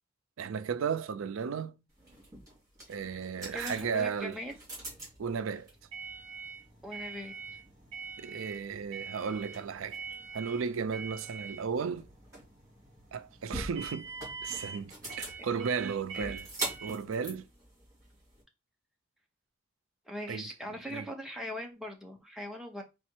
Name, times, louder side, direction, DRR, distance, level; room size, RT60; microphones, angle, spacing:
voice 1, 0.4-1.8 2.9-4.4 5.2-5.7 8.2-10.0 10.3-12.1 13.1-14.1 14.4-16.5 16.8-17.5 20.3-20.5 20.9-21.1, right 6 dB, 80° right, 0.4 m, -34 dB
sound 1, 2.0-18.4, right 3 dB, 20° right, 2.6 m, -43 dB
voice 2, 2.9-3.2 3.5-4.5 6.8-7.3 16.1-16.4 20.1-22.8, equal, ahead, 0.7 m, -40 dB
4.1 x 2.4 x 4.4 m
head